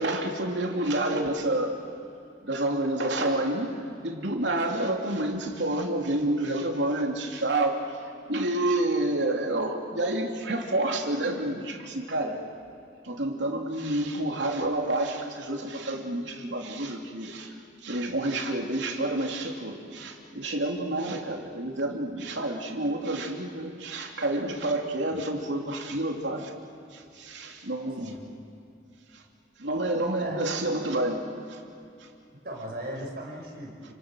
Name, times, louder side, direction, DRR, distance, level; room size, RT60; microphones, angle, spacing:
voice 1, 0.0-1.8 2.4-8.0 8.3-12.4 13.0-17.5 17.8-26.5 26.9-28.2 29.1-29.2 29.6-31.6, right 1 dB, 80° right, 2 dB, 3.2 m, -29 dB
voice 2, 32.4-33.9, right 1 dB, 55° right, -1 dB, 6.2 m, -37 dB
29.5 x 26.5 x 6.5 m, 2.6 s
head